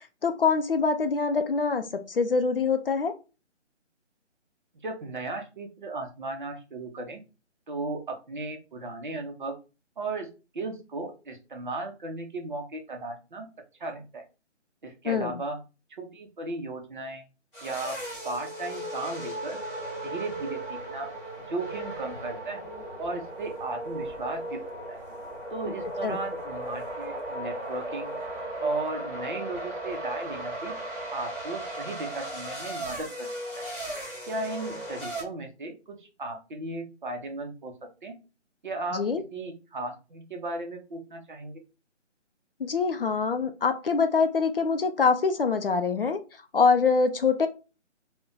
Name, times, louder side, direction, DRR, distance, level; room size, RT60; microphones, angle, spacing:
voice 1, 0.2-3.1 15.1-15.4 26.0-26.2 38.9-39.2 42.6-46.2 46.5-47.5, left 5 dB, 50° left, 8 dB, 0.4 m, -24 dB
voice 2, 4.8-7.2 7.7-9.5 10.0-10.3 10.5-13.5 13.8-14.2 14.8-15.6 16.0-17.2 17.6-18.0 18.2-19.6 20.0-21.1 21.5-22.6 23.0-24.6 24.9-25.0 25.5-28.1 28.6-30.7 31.1-33.3 33.5-33.6 34.3-38.2 38.6-39.0 39.3-41.6, right 2 dB, 45° right, 4 dB, 0.6 m, -35 dB
sound 1, 17.5-35.2, right 1 dB, 15° left, 1.1 m, -36 dB
2.4 x 2.2 x 3.7 m, 0.31 s
figure-of-eight pair, 155°, 36 cm